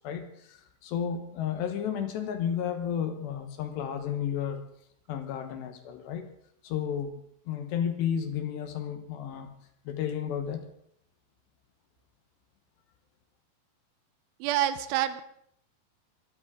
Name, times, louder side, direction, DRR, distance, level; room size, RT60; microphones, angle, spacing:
voice 1, 0.0-4.6 5.1-6.3 6.6-7.1 7.5-9.5 9.9-10.7, left 8 dB, 70° left, 7 dB, 3.1 m, -32 dB
voice 2, 14.4-15.2, right 12 dB, 80° right, 12 dB, 3.2 m, -27 dB
23.5 x 13.0 x 3.7 m, 0.69 s
omnidirectional pair, 5.6 m